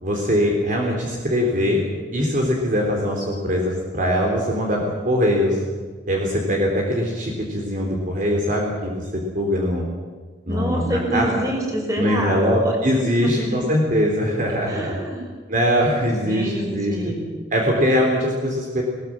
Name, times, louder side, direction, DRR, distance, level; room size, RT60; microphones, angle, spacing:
voice 1, 0.0-1.8 2.1-5.6 6.1-9.9 10.5-11.3 12.0-14.9 15.5-16.9 17.5-18.8, equal, 50° right, 0 dB, 3.6 m, -22 dB
voice 2, 10.5-13.6 14.5-15.3 16.1-17.3, right 1 dB, 20° right, 0 dB, 5.7 m, -27 dB
20.0 x 20.0 x 7.4 m, 1.4 s
head